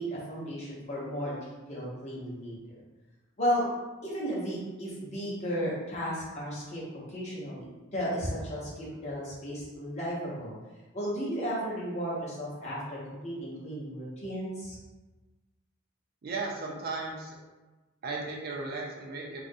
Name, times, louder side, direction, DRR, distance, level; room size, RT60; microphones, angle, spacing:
voice 1, 0.0-2.6 3.4-3.6 4.0-6.8 7.1-10.6 10.9-14.8, equal, 35° left, -7 dB, 0.7 m, -34 dB
voice 2, 16.2-17.4 18.0-19.4, right 3 dB, 45° right, -1 dB, 0.4 m, -35 dB
2.4 x 2.0 x 2.6 m, 1.2 s
head